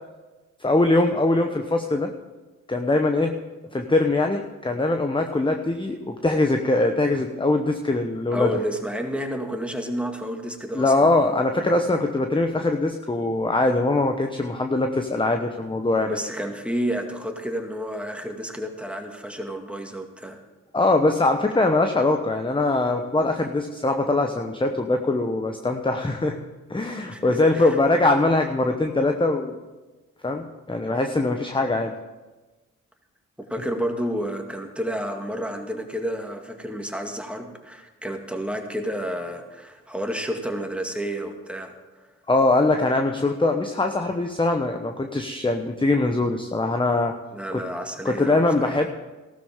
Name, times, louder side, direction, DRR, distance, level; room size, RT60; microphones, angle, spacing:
voice 1, 0.6-2.1 2.7-3.4 3.7-8.5 10.7-16.2 20.7-26.4 26.7-29.6 30.2-31.9 42.3-47.1 47.5-47.6 48.0-48.9, left 2 dB, 15° left, 4 dB, 1.0 m, -22 dB
voice 2, 8.3-11.1 16.0-20.4 27.1-27.8 33.5-41.7 42.0-42.1 47.3-48.8, equal, 5° right, 3 dB, 2.1 m, -30 dB
15.0 x 12.5 x 3.7 m, 1.2 s
hypercardioid pair, 40°, 36 cm